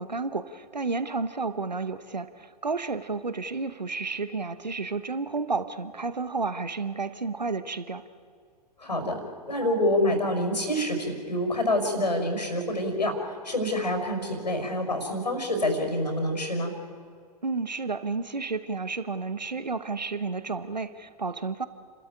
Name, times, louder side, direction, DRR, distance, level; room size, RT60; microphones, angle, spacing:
voice 1, 0.0-8.0 17.4-21.7, right 4 dB, 90° right, 13 dB, 1.1 m, -31 dB
voice 2, 8.8-9.2 9.5-16.7, left 1 dB, 85° left, 5 dB, 5.6 m, -27 dB
29.5 x 13.0 x 9.8 m, 2.1 s
figure-of-eight pair, 105°, 21 cm